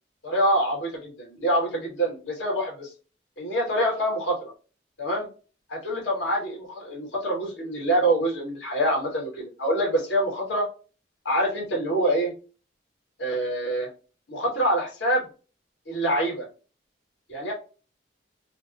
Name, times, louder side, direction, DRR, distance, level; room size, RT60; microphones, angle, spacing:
voice 1, 0.2-2.9 3.4-4.5 5.0-5.3 5.7-10.6 11.2-12.3 13.2-13.9 14.3-15.2 15.9-16.5 17.3-17.5, right 1 dB, 90° left, -1 dB, 1.6 m, -25 dB
4.2 x 2.1 x 2.6 m, 0.35 s
head